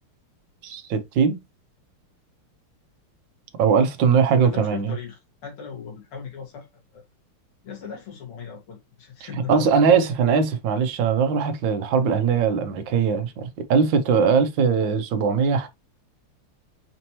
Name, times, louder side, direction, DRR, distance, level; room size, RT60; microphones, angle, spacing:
voice 1, 0.6-1.4 3.6-4.9 9.2-15.7, right 6 dB, 70° right, 1.3 m, -20 dB
voice 2, 4.4-6.7 6.9-7.0 7.6-10.0, left 7 dB, 90° left, 2.5 m, -38 dB
5.2 x 2.8 x 2.9 m
omnidirectional pair, 2.4 m